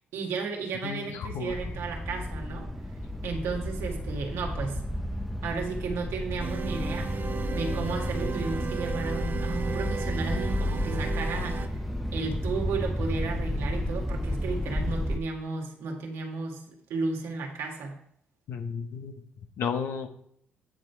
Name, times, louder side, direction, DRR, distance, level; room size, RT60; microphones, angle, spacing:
voice 1, 0.1-2.7 3.2-4.8 5.4-7.2 7.5-11.8 12.1-18.0, right 4 dB, 80° right, 1 dB, 2.0 m, -34 dB
voice 2, 0.8-1.5 18.5-19.1 19.6-20.1, left 6 dB, 70° left, 6 dB, 1.2 m, -33 dB
sound 1, 1.5-15.2, left 1 dB, ahead, 0.8 m, -32 dB
sound 2, 6.4-11.7, right 6 dB, 55° right, 1.0 m, -35 dB
9.5 x 5.2 x 4.7 m, 0.69 s
supercardioid pair, 60°, 4 cm